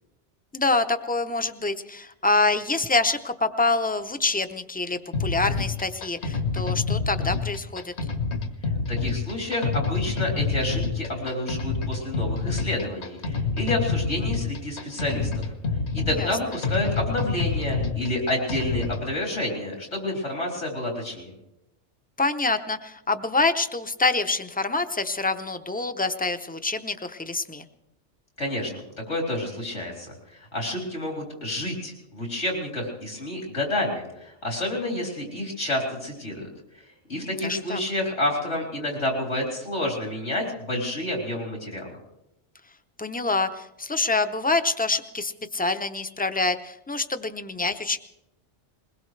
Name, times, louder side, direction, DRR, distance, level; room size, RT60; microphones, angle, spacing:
voice 1, 0.5-7.9 16.2-16.3 22.2-27.6 37.2-37.8 43.0-48.0, left 3 dB, 10° left, 9 dB, 0.5 m, -26 dB
sound 1, 5.1-19.1, left 4 dB, 70° left, 1.5 m, -28 dB
voice 2, 8.9-15.5 15.9-21.3 28.4-28.7 29.1-36.5 37.1-41.9, left 1 dB, 90° left, -1 dB, 4.4 m, -29 dB
21.5 x 20.5 x 3.3 m, 0.87 s
omnidirectional pair, 1.2 m